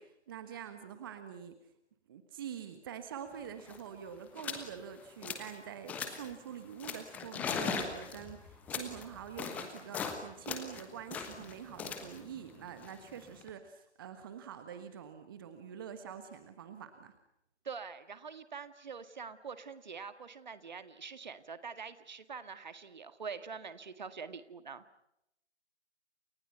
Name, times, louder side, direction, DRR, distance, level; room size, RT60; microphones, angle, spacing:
voice 1, 0.0-1.6 2.1-17.1, right 8 dB, 20° right, 9 dB, 1.4 m, -46 dB
sound 1, 3.3-3.4 3.6-3.9 4.4-4.7 5.0-5.6 5.9-6.3 6.8-10.2 10.5-13.5, left 6 dB, 5° left, 1.2 m, -39 dB
voice 2, 17.6-24.8, right 5 dB, 40° right, 11 dB, 1.9 m, -45 dB
29.5 x 28.0 x 5.8 m, 0.81 s
figure-of-eight pair, 145°, 34 cm